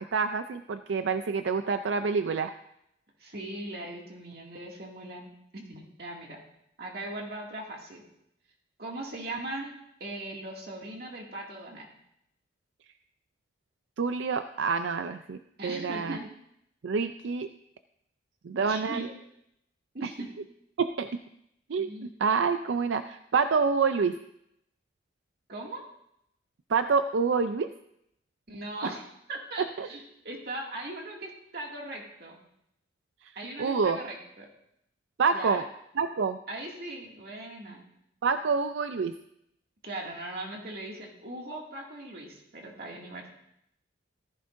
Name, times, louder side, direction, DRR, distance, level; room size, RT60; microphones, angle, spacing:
voice 1, 0.0-2.5 14.0-16.2 16.8-17.5 18.4-19.1 20.0-20.1 20.8-21.2 21.7-24.2 26.7-27.7 28.8-28.9 29.6-29.9 33.2-33.3 33.6-34.0 35.2-35.6 36.0-36.4 38.2-39.1, right 5 dB, 85° right, 9 dB, 0.4 m, -27 dB
voice 2, 3.2-6.4 6.8-8.0 8.8-9.7 10.0-11.9 15.6-16.3 18.7-19.1 19.9-20.3 21.8-22.1 25.5-25.9 28.5-32.4 33.4-34.5 35.3-35.6 36.5-37.9 39.8-43.3, right 2 dB, 55° right, -1 dB, 2.2 m, -39 dB
15.0 x 14.0 x 2.6 m, 0.78 s
head